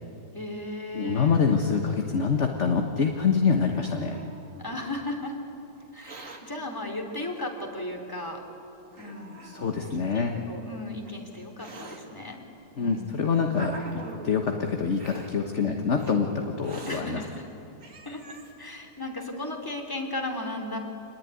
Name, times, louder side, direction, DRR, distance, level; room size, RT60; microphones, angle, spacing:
voice 1, 0.3-1.4 4.6-5.4 5.9-8.4 9.0-9.4 10.1-12.4 12.8-13.2 15.6-15.8 16.8-17.4 18.0-20.8, left 2 dB, 10° left, 1 dB, 3.2 m, -35 dB
voice 2, 0.9-4.2 9.4-10.3 12.8-17.2, left 5 dB, 45° left, 3 dB, 1.5 m, -25 dB
Hiss, 3.2-4.9 5.8-6.4 7.4-7.5 8.3-8.4 8.9-9.9 10.8-12.0 12.8-14.3 14.9-15.3 16.0-16.1 16.6-17.0 17.5-17.6 17.8-18.5, right 2 dB, 50° right, 2.5 m, -44 dB
26.5 x 20.0 x 9.8 m, 2.9 s
omnidirectional pair, 1.9 m